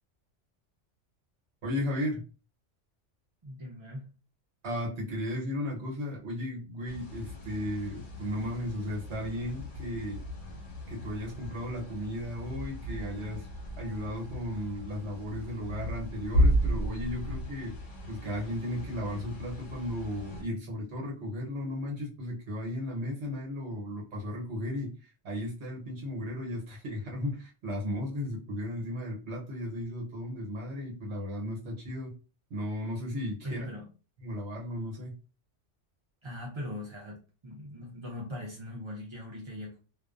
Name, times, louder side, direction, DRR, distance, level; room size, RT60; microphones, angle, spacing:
voice 1, 1.6-2.2 4.6-10.2 10.9-13.5 13.8-17.7 18.1-24.9 25.2-32.1 32.5-33.6 34.2-35.1, left 1 dB, 70° right, 1.1 m, -35 dB
voice 2, 3.4-4.1 33.4-33.9 36.2-39.8, left 1 dB, 50° right, 0.3 m, -40 dB
sound 1, 6.9-20.4, equal, 80° left, 1.2 m, -34 dB
2.3 x 2.2 x 2.4 m
omnidirectional pair, 1.3 m